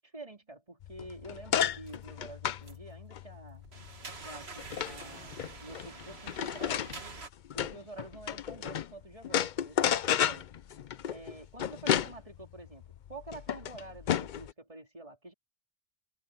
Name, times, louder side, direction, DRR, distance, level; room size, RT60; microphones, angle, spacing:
voice 1, 0.1-3.6 4.2-6.8 7.5-10.5 11.1-15.3, right 2 dB, 35° right, 4.0 m, -48 dB
bath cabinet, 0.8-8.9 9.2-14.5, left 9 dB, 55° left, 0.6 m, -33 dB
sound 1, 1.9-2.0 2.6-3.0 3.3-7.3, right 3 dB, 85° right, 2.1 m, -46 dB
open air
omnidirectional pair, 1.0 m